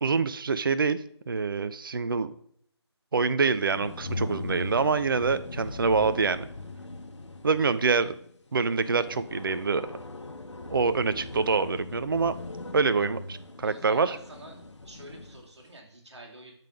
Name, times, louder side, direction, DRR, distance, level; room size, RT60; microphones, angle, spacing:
voice 1, 0.0-2.3 3.1-6.5 7.4-8.1 8.5-10.0 10.7-12.4 12.7-14.2, right 4 dB, 50° right, 13 dB, 0.4 m, -26 dB
sound 1, 3.5-15.5, left 2 dB, 90° left, 0.9 m, -40 dB
voice 2, 13.6-14.6 14.8-16.5, right 1 dB, 70° right, 0 dB, 2.0 m, -47 dB
7.3 x 3.8 x 5.0 m, 0.66 s
figure-of-eight pair, 165°, 15 cm